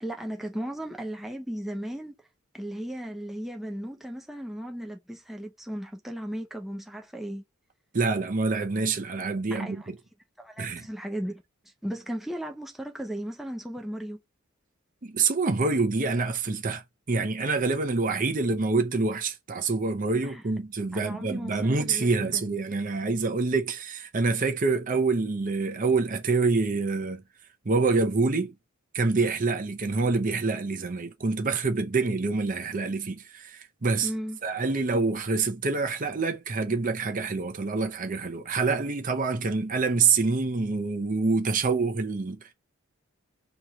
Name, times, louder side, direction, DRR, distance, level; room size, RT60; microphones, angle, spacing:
voice 1, 0.0-2.1 2.5-7.4 9.5-9.9 10.4-11.4 11.8-14.2 20.2-20.4 20.9-22.4 34.0-34.4, equal, ahead, 0.6 m, -36 dB
voice 2, 7.9-10.0 10.6-10.9 15.0-16.8 17.1-27.2 27.6-28.5 28.9-34.1 34.4-42.5, right 4 dB, 40° right, 0.7 m, -26 dB
3.1 x 3.0 x 3.6 m
head